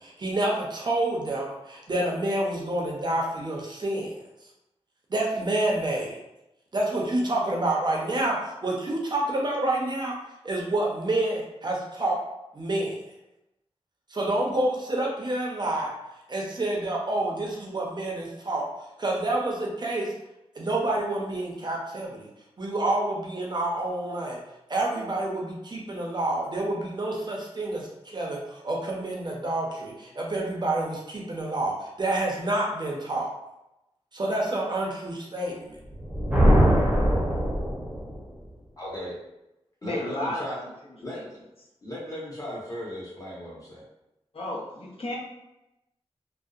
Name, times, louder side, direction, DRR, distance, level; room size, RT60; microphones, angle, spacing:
voice 1, 0.0-4.2 5.1-6.2 6.7-10.2 10.4-12.2 12.5-13.0 14.1-15.9 16.3-18.7 19.0-20.1 20.6-22.3 22.6-24.4 24.7-33.3 34.1-35.8, right 1 dB, 40° right, -2 dB, 0.5 m, -28 dB
Thunder, 35.8-38.2, equal, 5° right, 0.7 m, -21 dB
voice 2, 38.8-39.2 39.8-40.6 41.0-41.4 41.8-43.8, equal, 30° left, -7 dB, 1.1 m, -36 dB
voice 3, 39.8-41.2 44.3-45.2, left 1 dB, 60° left, -5 dB, 0.7 m, -33 dB
2.6 x 2.0 x 2.4 m, 0.90 s
wide cardioid pair, 70°, 11 cm